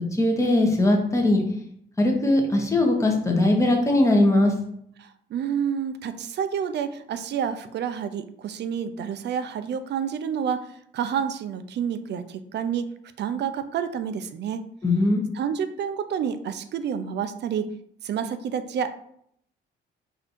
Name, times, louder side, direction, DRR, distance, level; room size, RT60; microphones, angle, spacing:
voice 1, 0.1-1.4 2.0-4.5 14.8-15.2, left 1 dB, 15° left, 1 dB, 1.1 m, -20 dB
voice 2, 5.0-12.9 13.2-14.7 15.3-17.7 18.0-18.9, right 7 dB, 60° right, 11 dB, 0.5 m, -29 dB
4.2 x 2.7 x 4.3 m, 0.69 s
cardioid pair, 90°, 20 cm